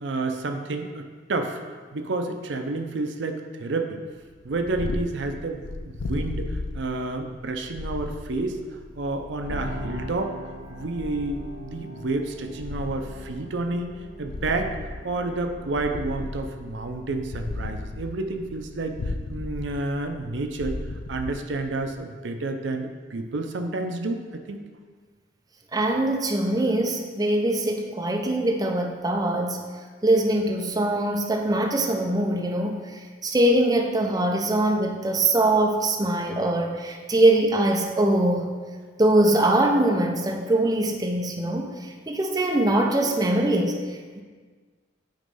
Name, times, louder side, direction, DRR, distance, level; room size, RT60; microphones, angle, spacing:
voice 1, 0.0-1.6 1.9-4.0 4.4-10.4 10.7-13.9 14.2-14.7 15.0-20.8 21.1-24.6, right 2 dB, 70° right, 5 dB, 0.5 m, -30 dB
Purr, 4.3-22.0, left 2 dB, 90° left, 0.5 m, -36 dB
sound 1, 9.5-19.2, equal, 50° right, 0.9 m, -44 dB
voice 2, 25.7-29.6 30.0-38.5 39.0-44.2, right 1 dB, 20° right, 2 dB, 0.5 m, -22 dB
8.9 x 3.1 x 5.4 m, 1.5 s
head